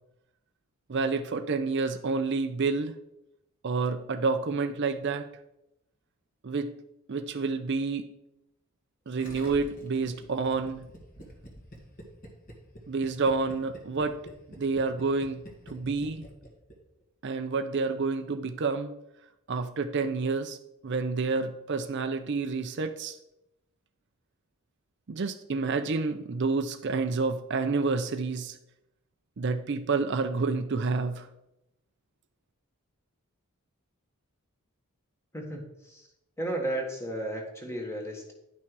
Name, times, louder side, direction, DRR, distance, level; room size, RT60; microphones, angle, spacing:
voice 1, 0.9-2.9 3.6-5.3 6.4-6.7 7.1-8.1 9.1-10.8 12.9-14.2 14.6-15.4 15.7-16.2 17.2-18.9 19.5-20.6 20.8-23.2 25.1-28.6 29.4-31.3, right 4 dB, 50° right, 8 dB, 0.5 m, -29 dB
Gurgling, 9.2-16.8 17.0-17.1, equal, 40° left, 1.8 m, -47 dB
voice 2, 35.3-36.1 36.4-38.3, right 1 dB, 10° left, 1 dB, 1.7 m, -34 dB
10.0 x 6.0 x 4.7 m, 0.86 s
head